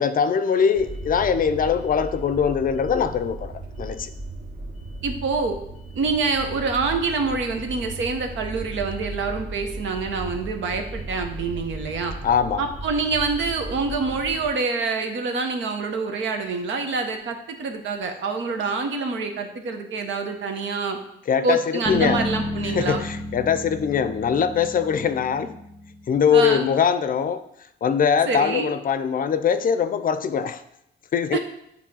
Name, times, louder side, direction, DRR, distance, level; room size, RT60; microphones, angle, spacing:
voice 1, 0.0-3.5 3.8-4.1 12.2-12.6 21.3-21.6 21.9-22.2 22.7-25.5 26.1-27.5 27.8-30.6 31.1-31.4, left 7 dB, 45° left, 0.5 m, -22 dB
sound 1, 0.7-14.5, right 2 dB, 40° right, 1.3 m, -36 dB
voice 2, 5.0-5.6 5.9-12.1 12.6-21.0 21.4-23.1 26.3-26.7 28.3-28.7 31.3-31.4, right 4 dB, 70° right, 1.0 m, -26 dB
Bass guitar, 21.9-26.3, left 1 dB, 15° right, 1.7 m, -32 dB
7.5 x 3.2 x 5.4 m
cardioid pair, 90°, 20 cm